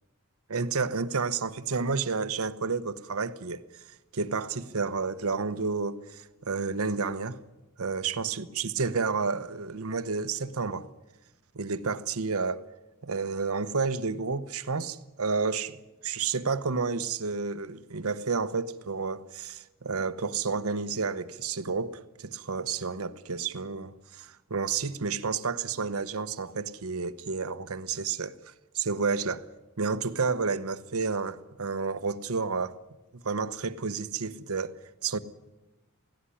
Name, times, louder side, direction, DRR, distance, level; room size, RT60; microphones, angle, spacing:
voice 1, 0.5-3.6 4.1-7.4 7.8-10.9 11.5-12.6 13.0-15.8 16.0-28.3 28.7-29.4 29.8-32.8 33.2-35.2, right 4 dB, 85° right, 1.0 m, -30 dB
17.0 x 17.0 x 9.9 m
head